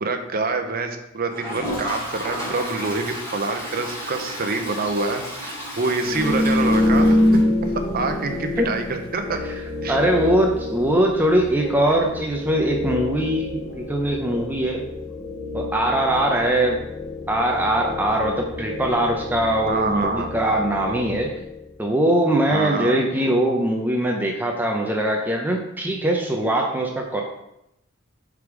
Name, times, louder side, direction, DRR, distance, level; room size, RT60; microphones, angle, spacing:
voice 1, 0.0-9.4 9.8-10.0 19.7-20.3 22.5-23.0, right 3 dB, 45° right, 6 dB, 0.7 m, -26 dB
Toilet flush, 1.3-8.0 8.3-8.4 8.6-8.7 9.0-9.1 11.6-11.7 13.0-13.1, equal, 15° left, 2.5 m, -33 dB
sound 1, 6.0-21.8, left 1 dB, 35° left, 0.9 m, -26 dB
voice 2, 9.9-14.8 15.5-16.8 17.3-21.4 21.8-27.2, right 1 dB, 10° right, 1 dB, 0.6 m, -21 dB
5.3 x 4.8 x 4.8 m, 0.84 s
head